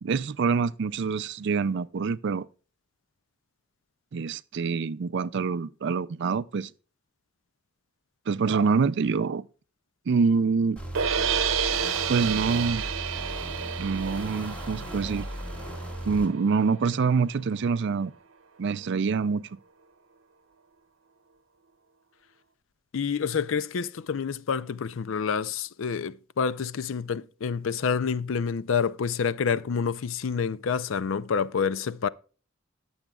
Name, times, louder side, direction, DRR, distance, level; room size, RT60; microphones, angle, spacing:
voice 1, 0.0-2.5 4.1-6.7 8.3-9.4 10.1-10.8 12.1-12.9 13.8-15.3 16.0-18.1 18.6-19.5, right 5 dB, 60° right, 0.4 m, -26 dB
sound 1, 10.8-16.3, equal, 5° left, 1.8 m, -37 dB
sound 2, 10.9-17.1, right 7 dB, 80° right, 0.8 m, -30 dB
voice 2, 22.9-32.1, left 6 dB, 70° left, 0.5 m, -28 dB
21.0 x 7.1 x 2.3 m
head